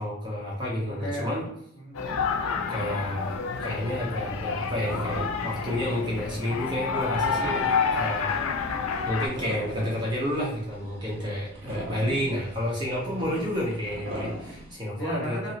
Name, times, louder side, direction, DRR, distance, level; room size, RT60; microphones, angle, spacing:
voice 1, 0.0-1.5 2.7-3.3 3.6-8.4 9.1-15.4, left 1 dB, 20° right, -4 dB, 0.7 m, -30 dB
voice 2, 1.7-3.1 13.1-13.4 15.0-15.5, equal, 55° left, -4 dB, 1.3 m, -37 dB
sound 1, 1.9-9.3, left 5 dB, 80° left, 0.4 m, -29 dB
sound 2, 3.2-14.7, right 1 dB, 65° right, 0.8 m, -41 dB
2.9 x 2.6 x 2.8 m, 0.71 s
head